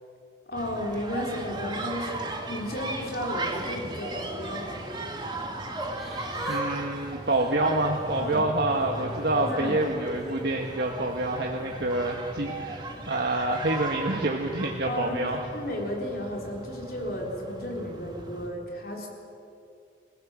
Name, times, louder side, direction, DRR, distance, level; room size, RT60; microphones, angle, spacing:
voice 1, 0.5-4.7 8.2-8.4 9.4-9.8 14.8-19.1, left 1 dB, 55° left, -1 dB, 4.2 m, -33 dB
sound 1, 0.5-18.5, right 2 dB, 25° right, 2.0 m, -37 dB
Yell / Crying sobbing, 3.9-5.1 5.7-6.6 6.9-8.3 8.8-10.4 11.1-11.3, equal, ahead, 3.5 m, -41 dB
voice 2, 6.5-15.4, right 2 dB, 60° right, 1 dB, 1.6 m, -27 dB
27.0 x 16.5 x 7.7 m, 2.6 s
head